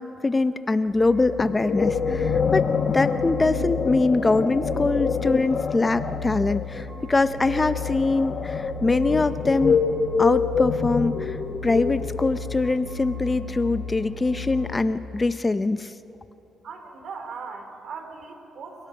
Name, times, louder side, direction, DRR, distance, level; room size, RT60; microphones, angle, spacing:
voice 1, 0.0-9.8 10.2-11.4 11.6-15.9, left 3 dB, 20° left, 13 dB, 0.5 m, -23 dB
sound 1, 0.9-14.8, left 3 dB, 35° right, 7.0 m, -35 dB
sound 2, 1.4-12.7, left 6 dB, 50° left, 1.1 m, -26 dB
voice 2, 16.6-18.9, right 5 dB, 65° right, 6 dB, 2.8 m, -39 dB
28.5 x 17.5 x 5.5 m, 2.9 s
cardioid pair, 90°, 0 cm